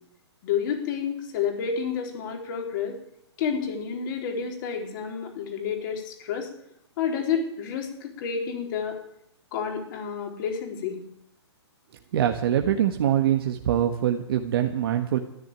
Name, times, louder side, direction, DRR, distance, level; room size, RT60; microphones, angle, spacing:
voice 1, 0.4-3.0 3.4-6.5 7.0-9.0 9.5-11.0, left 7 dB, 45° left, 2 dB, 4.2 m, -30 dB
voice 2, 12.1-15.2, right 10 dB, 55° right, 4 dB, 1.5 m, -23 dB
13.5 x 10.5 x 9.0 m, 0.77 s
hypercardioid pair, 135°, 15 cm